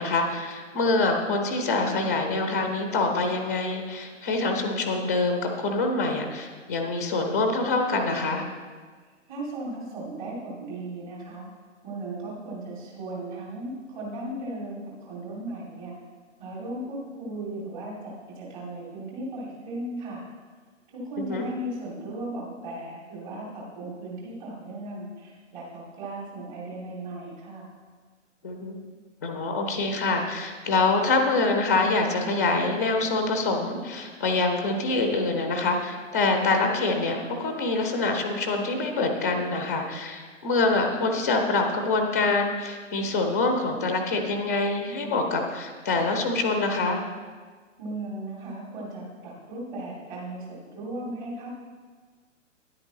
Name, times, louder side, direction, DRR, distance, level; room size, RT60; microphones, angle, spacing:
voice 1, 0.0-8.5 21.2-21.5 28.4-28.7 29.2-47.0, left 3 dB, 15° left, 4 dB, 0.3 m, -25 dB
voice 2, 9.3-11.5 11.8-15.9 16.4-20.2 20.9-27.7 47.8-51.5, right 1 dB, 35° right, -4 dB, 2.8 m, -36 dB
10.0 x 8.7 x 3.1 m, 1.5 s
figure-of-eight pair, 125°, 38 cm